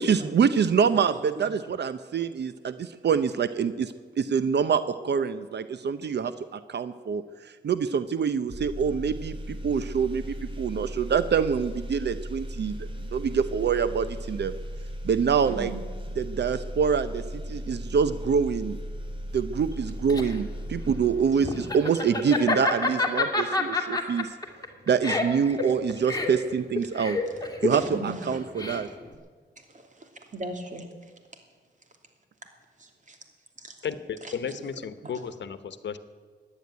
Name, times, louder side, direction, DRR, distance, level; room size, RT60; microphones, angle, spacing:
voice 1, 0.0-14.5 15.0-15.7 16.2-17.2 17.5-18.8 19.3-24.3 24.9-27.2 27.6-28.9, right 6 dB, 70° right, 12 dB, 0.7 m, -26 dB
sound 1, 8.5-21.9, equal, 30° right, 3.1 m, -37 dB
voice 2, 15.4-15.8 21.4-21.6 27.7-28.4 29.7-30.9 32.8-33.2 33.6-33.8 34.2-34.3, right 2 dB, 45° right, 4 dB, 2.9 m, -37 dB
Laughter, 19.7-29.1, left 3 dB, 20° left, 2.4 m, -29 dB
voice 3, 33.8-36.0, left 7 dB, 80° left, 12 dB, 1.0 m, -34 dB
15.0 x 10.0 x 9.5 m, 1.5 s
cardioid pair, 70°, 18 cm